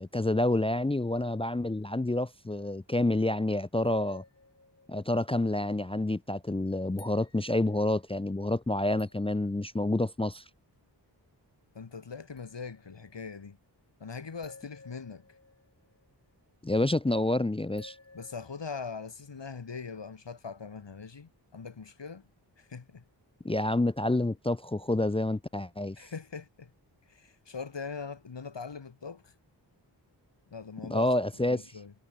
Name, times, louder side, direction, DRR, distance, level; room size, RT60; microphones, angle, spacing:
voice 1, 0.0-4.2 4.9-10.4 16.6-18.0 23.4-26.0 30.9-31.6, left 1 dB, 15° left, 0.6 m, -28 dB
sound 1, 3.8-5.4 6.0-6.1 6.7-7.8 8.6-8.7 9.0-9.3 11.7-11.8 12.4-13.2 14.4-16.1 17.8-19.4 20.7-20.8, left 3 dB, 35° left, 3.7 m, -54 dB
voice 2, 11.7-13.6 14.0-15.2 18.1-22.2 22.6-23.0 26.0-26.7 27.1-29.3 30.5-31.1 31.3-31.9, left 5 dB, 75° left, 5.5 m, -41 dB
wide cardioid pair, 75°, 44 cm